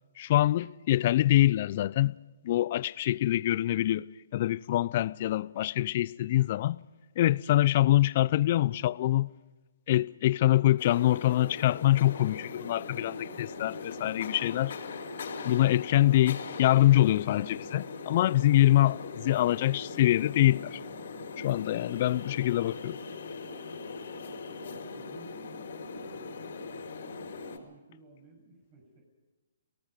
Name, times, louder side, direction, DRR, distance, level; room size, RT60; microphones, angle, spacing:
voice 1, 0.2-2.1 2.4-4.0 4.3-6.8 7.2-9.3 9.9-14.7 15.4-20.8 21.4-23.0, left 14 dB, 45° left, 0.7 m, -25 dB
sound 1, 10.8-27.6, left 4 dB, 60° left, 4.7 m, -40 dB
voice 2, 24.9-26.4 26.7-26.9 27.3-29.0, right 3 dB, 40° right, 7.3 m, -56 dB
29.5 x 18.5 x 5.3 m
hypercardioid pair, 135°, 0 cm